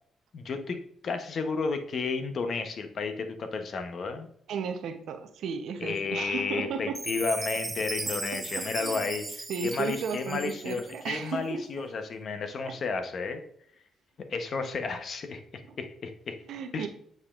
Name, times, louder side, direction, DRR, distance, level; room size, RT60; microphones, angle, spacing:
voice 1, 0.3-4.3 5.8-13.4 14.3-16.4 16.7-16.9, left 4 dB, 55° left, 7 dB, 0.8 m, -32 dB
voice 2, 4.5-7.0 8.5-9.1 9.5-11.6 15.7-15.8 16.5-16.9, right 6 dB, 75° right, 7 dB, 0.7 m, -34 dB
Chime, 6.9-11.2, right 2 dB, 20° right, 0.5 m, -37 dB
8.1 x 5.1 x 2.4 m, 0.66 s
cardioid pair, 90°, 0 cm